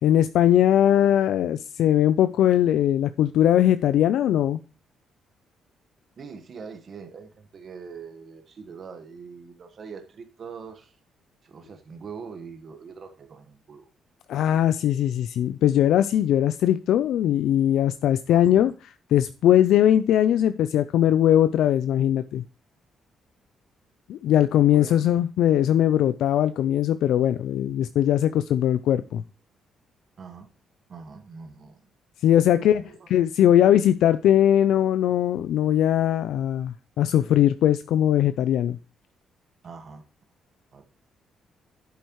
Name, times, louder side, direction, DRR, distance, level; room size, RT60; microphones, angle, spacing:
voice 1, 0.0-4.6 14.3-18.7 19.1-22.4 24.1-29.2 32.2-32.8 33.1-38.8, left 11 dB, 80° left, 12 dB, 0.4 m, -20 dB
voice 2, 6.2-11.0 11.4-13.9 18.3-18.5 24.7-25.0 30.2-30.5 30.9-31.8 32.6-33.1 39.6-40.0 40.7-40.9, right 5 dB, 50° right, 6 dB, 1.3 m, -42 dB
10.5 x 8.1 x 3.0 m, 0.33 s
cardioid pair, 90°, 0 cm